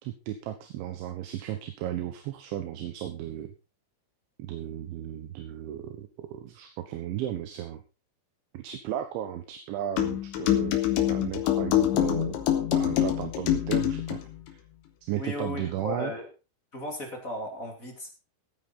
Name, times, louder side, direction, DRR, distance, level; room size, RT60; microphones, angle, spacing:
voice 1, 0.0-3.5 4.4-7.8 8.5-12.4 12.7-14.2 14.5-14.6 15.0-16.1, right 11 dB, 75° right, 8 dB, 3.6 m, -35 dB
sound 1, 10.0-14.2, left 12 dB, 80° left, 4.0 m, -25 dB
voice 2, 15.2-16.3 16.7-18.1, left 2 dB, 20° left, 2 dB, 2.5 m, -36 dB
16.5 x 9.4 x 4.2 m, 0.29 s
omnidirectional pair, 5.5 m